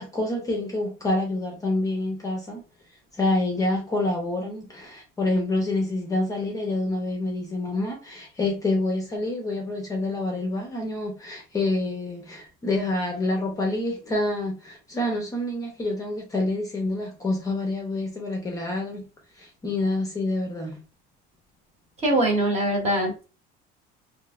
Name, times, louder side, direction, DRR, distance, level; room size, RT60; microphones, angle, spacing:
voice 1, 0.0-2.6 3.1-19.0 19.4-20.8, left 2 dB, 15° left, 0.5 m, -27 dB
voice 2, 22.0-23.2, right 1 dB, 30° right, 1.0 m, -22 dB
3.1 x 2.6 x 2.3 m
cardioid pair, 165°, 21 cm